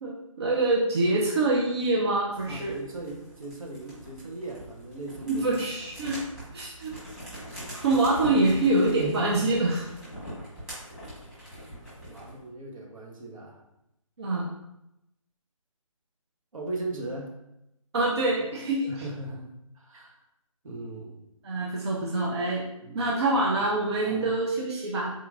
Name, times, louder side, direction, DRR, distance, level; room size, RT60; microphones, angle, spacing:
voice 1, 0.0-2.8 5.3-6.2 6.5-6.9 7.8-9.9 14.2-14.4 17.9-18.9 21.4-22.6 22.9-25.1, right 2 dB, 50° right, -3 dB, 0.6 m, -25 dB
sound 1, 2.3-12.4, equal, 5° right, 1.3 m, -42 dB
voice 2, 2.5-5.5 11.7-13.6 16.5-17.4 18.9-19.5 19.7-20.2 20.6-21.2 22.8-23.0 24.1-24.3, right 2 dB, 70° right, 0 dB, 1.0 m, -38 dB
3.7 x 2.9 x 2.4 m, 0.86 s
figure-of-eight pair, 155°, 18 cm